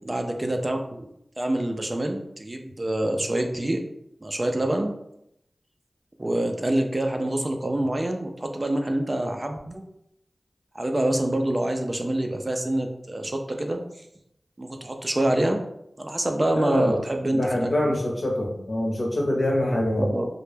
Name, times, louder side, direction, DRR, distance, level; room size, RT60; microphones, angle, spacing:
voice 1, 0.1-1.1 1.4-3.8 4.2-4.9 6.2-9.8 10.7-13.8 14.6-15.6 16.0-17.9 20.0-20.3, right 1 dB, 35° right, 4 dB, 0.3 m, -26 dB
voice 2, 16.5-17.0 17.3-20.1, left 1 dB, 55° left, -1 dB, 0.7 m, -25 dB
2.1 x 2.1 x 3.1 m, 0.79 s
wide cardioid pair, 50°, 0 cm